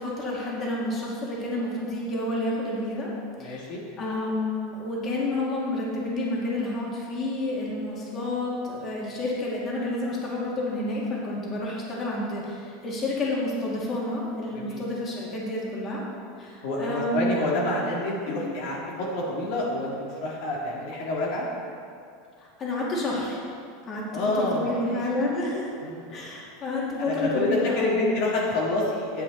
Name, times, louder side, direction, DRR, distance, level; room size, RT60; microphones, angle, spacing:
voice 1, 0.0-3.1 3.4-3.7 4.0-16.0 16.4-17.4 18.3-18.5 22.6-23.4 23.9-25.7 26.1-28.1, left 2 dB, 30° left, -4 dB, 2.2 m, -29 dB
voice 2, 3.4-3.8 14.5-14.8 16.6-21.4 24.1-25.0 25.8-26.1 27.0-29.2, left 2 dB, 65° left, -4 dB, 1.8 m, -28 dB
9.2 x 7.8 x 4.1 m, 2.4 s
supercardioid pair, 130°, 0 cm